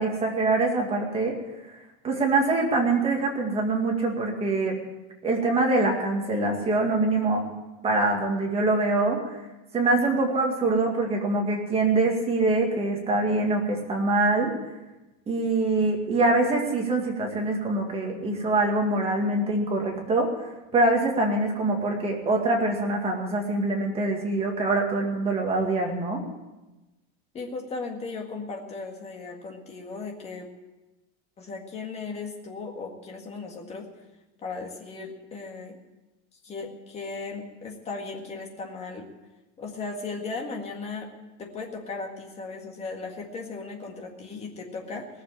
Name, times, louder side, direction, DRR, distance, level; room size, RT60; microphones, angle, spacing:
voice 1, 0.0-1.4 2.0-4.8 5.2-7.4 7.8-9.2 9.7-14.5 15.3-20.3 20.7-26.2, right 2 dB, 20° right, 0 dB, 2.1 m, -24 dB
voice 2, 27.3-30.5 31.4-33.9 34.4-35.8 36.4-39.1 39.6-41.1 41.4-45.1, left 4 dB, 20° left, 1 dB, 1.9 m, -36 dB
18.0 x 7.5 x 9.6 m, 1.1 s
supercardioid pair, 175°, 33 cm